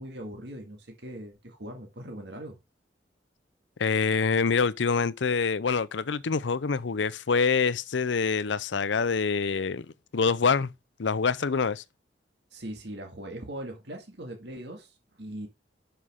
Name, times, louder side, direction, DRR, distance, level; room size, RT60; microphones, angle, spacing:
voice 1, 0.0-2.6 12.5-15.5, right 1 dB, 65° right, 2.0 m, -40 dB
voice 2, 3.8-9.9 10.1-10.7 11.0-11.8, left 5 dB, 80° left, 0.6 m, -25 dB
11.0 x 5.7 x 3.6 m
head